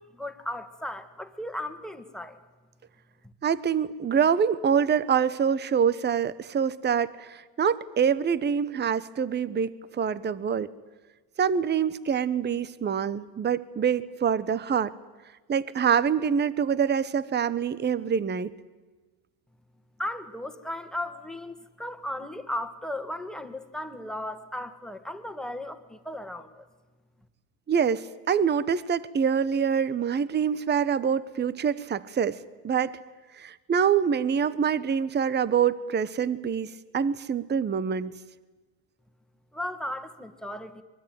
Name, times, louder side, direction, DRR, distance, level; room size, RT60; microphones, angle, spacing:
voice 1, 0.1-2.4 20.0-26.7 39.5-40.8, left 1 dB, ahead, 7 dB, 2.1 m, -36 dB
voice 2, 3.4-10.7 11.4-14.9 15.5-18.5 27.7-33.0 33.4-38.2, right 7 dB, 20° right, 17 dB, 0.9 m, -25 dB
25.0 x 22.0 x 9.3 m, 1.2 s
supercardioid pair, 105°, 46 cm